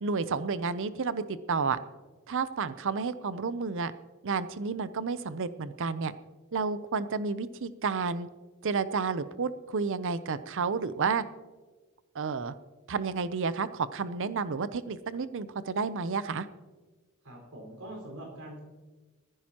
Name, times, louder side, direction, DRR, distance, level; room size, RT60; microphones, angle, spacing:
voice 1, 0.0-1.8 2.3-3.9 4.2-6.1 6.5-8.3 8.6-11.2 12.1-12.5 12.9-16.5, right 5 dB, 60° right, 14 dB, 0.6 m, -31 dB
voice 2, 17.2-18.6, right 1 dB, 75° right, 0 dB, 4.8 m, -43 dB
20.5 x 14.5 x 2.9 m, 1.3 s
head